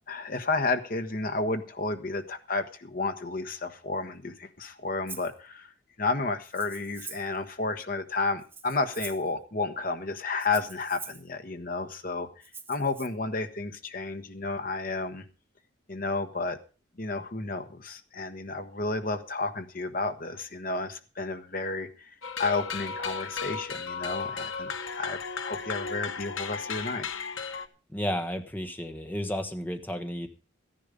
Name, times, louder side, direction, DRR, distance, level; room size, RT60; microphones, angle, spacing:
voice 1, 0.1-12.3 12.7-15.2 15.9-16.6 17.0-25.2 25.4-27.1, left 3 dB, 45° left, 8 dB, 1.2 m, -32 dB
Rattle (instrument), 5.1-5.3 6.4-7.4 8.4-9.3 10.4-11.3 12.4-13.1, right 4 dB, 10° right, 1.0 m, -44 dB
sound 1, 22.2-27.7, left 5 dB, 85° left, 1.0 m, -35 dB
voice 2, 27.9-30.3, equal, 10° left, 7 dB, 1.2 m, -32 dB
13.0 x 10.5 x 5.2 m, 0.35 s
head